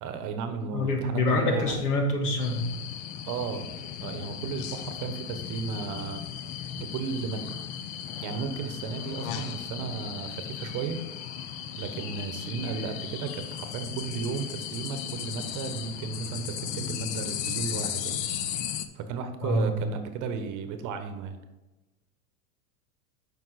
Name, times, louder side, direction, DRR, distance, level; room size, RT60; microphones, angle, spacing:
voice 1, 0.0-1.8 3.3-3.7 4.0-6.2 6.7-7.5 8.2-11.0 11.8-18.2 18.9-21.4, right 5 dB, 40° right, 8 dB, 1.0 m, -34 dB
voice 2, 0.7-2.7 19.4-19.7, left 2 dB, 80° left, 3 dB, 1.8 m, -26 dB
sound 1, 2.4-18.9, left 9 dB, 40° left, 0.6 m, -36 dB
7.6 x 5.4 x 4.1 m, 1.1 s
hypercardioid pair, 105°, 46 cm